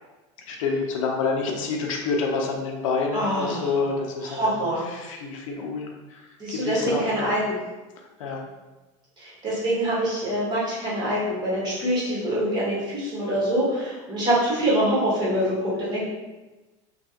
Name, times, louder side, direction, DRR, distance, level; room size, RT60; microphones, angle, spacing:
voice 1, 0.5-7.3 8.2-8.4, left 4 dB, 85° left, 1 dB, 0.6 m, -28 dB
voice 2, 3.1-3.6 4.3-4.8 6.4-7.5 9.2-16.0, right 1 dB, 25° right, -6 dB, 1.4 m, -25 dB
3.2 x 2.3 x 2.8 m, 1.1 s
supercardioid pair, 120°, 17 cm